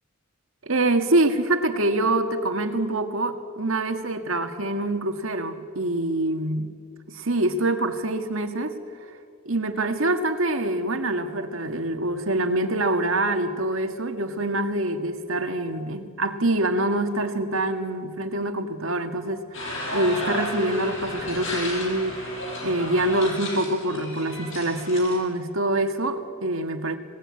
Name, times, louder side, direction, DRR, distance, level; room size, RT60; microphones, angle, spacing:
voice 1, 0.6-6.7 7.1-8.8 9.5-22.3 22.6-27.0, right 1 dB, 75° right, 7 dB, 1.9 m, -25 dB
sound 1, 19.5-25.2, left 1 dB, 65° left, 6.4 m, -33 dB
26.5 x 19.0 x 8.7 m, 2.3 s
head